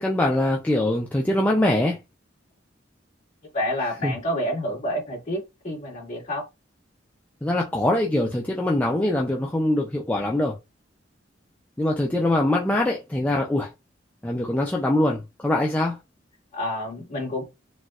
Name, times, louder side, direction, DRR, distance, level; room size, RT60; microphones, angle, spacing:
voice 1, 0.0-2.0 4.0-4.2 7.4-10.5 11.8-13.7 14.2-16.0, left 1 dB, 10° left, 0.4 m, -23 dB
voice 2, 3.5-6.4 16.5-17.4, equal, 40° left, 2.0 m, -28 dB
4.1 x 2.3 x 2.3 m
head